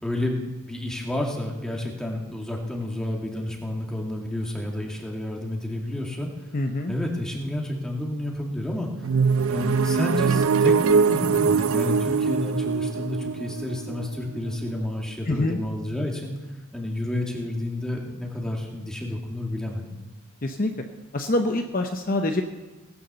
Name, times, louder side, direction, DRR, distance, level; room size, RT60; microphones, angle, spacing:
voice 1, 0.0-6.3 6.9-9.1 9.5-16.3 16.7-19.8, left 1 dB, 5° left, -1 dB, 2.3 m, -30 dB
voice 2, 6.5-6.9 15.3-15.6 20.4-20.7 21.1-22.4, left 2 dB, 40° left, 5 dB, 0.8 m, -25 dB
sound 1, 9.0-14.8, right 5 dB, 75° right, 0.4 m, -22 dB
18.5 x 9.8 x 6.9 m, 1.1 s
head